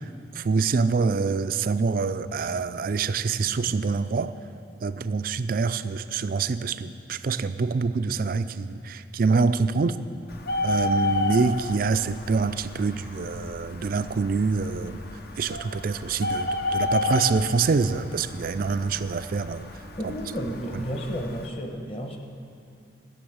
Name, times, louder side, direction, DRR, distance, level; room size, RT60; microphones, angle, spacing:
voice 1, 0.4-4.3 4.8-10.0 10.6-15.1 15.4-19.6 20.0-20.1 20.7-20.8, right 4 dB, 50° right, 13 dB, 0.4 m, -25 dB
Bird, 10.3-21.5, left 2 dB, 55° left, 0.8 m, -32 dB
voice 2, 20.0-22.2, equal, 30° left, 3 dB, 1.2 m, -32 dB
13.0 x 7.1 x 8.7 m, 2.6 s
head